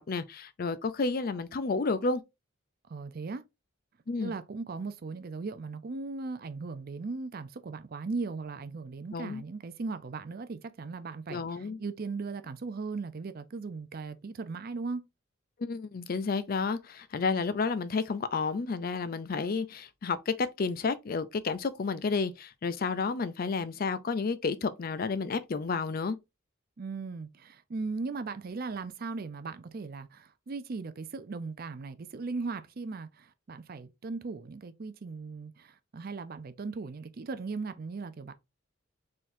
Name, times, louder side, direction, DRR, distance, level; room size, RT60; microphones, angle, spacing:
voice 1, 0.0-2.2 4.1-4.3 9.1-9.4 11.3-11.8 15.6-26.2, left 4 dB, 45° left, 0.4 m, -31 dB
voice 2, 2.9-3.4 4.2-15.0 26.8-38.3, right 4 dB, 45° right, 0.5 m, -38 dB
4.4 x 3.7 x 2.6 m
head